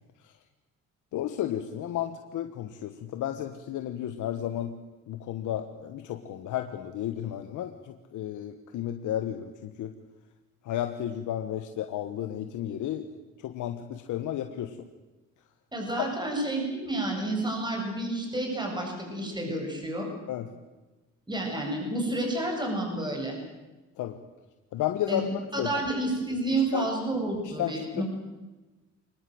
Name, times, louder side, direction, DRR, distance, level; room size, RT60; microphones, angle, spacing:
voice 1, 1.1-4.7 5.1-9.9 10.6-13.1 13.4-14.9 20.3-20.5 24.0-24.2 24.7-25.2 25.6-25.7 26.5-26.9 27.4-28.0, left 11 dB, 80° left, 7 dB, 1.4 m, -33 dB
voice 2, 15.7-20.1 21.3-23.4 25.1-28.0, right 1 dB, 15° right, 1 dB, 7.5 m, -30 dB
24.5 x 20.0 x 7.9 m, 1.2 s
cardioid pair, 90°, 30 cm